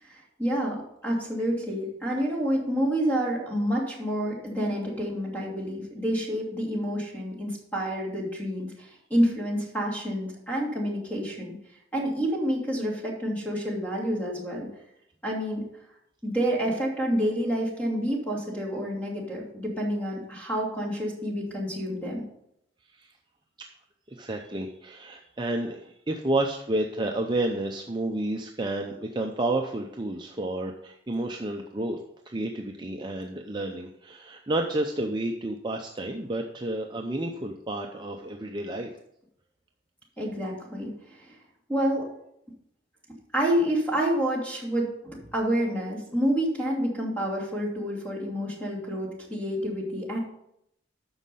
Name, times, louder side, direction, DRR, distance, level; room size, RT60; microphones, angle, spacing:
voice 1, 0.0-11.5 11.9-14.7 15.2-15.6 16.2-22.2 40.2-41.4 41.7-42.1 43.3-50.2, equal, 10° left, -3 dB, 2.8 m, -28 dB
voice 2, 24.1-32.0 32.3-38.9, right 1 dB, 25° right, 2 dB, 0.6 m, -30 dB
9.6 x 6.3 x 5.5 m, 0.77 s
head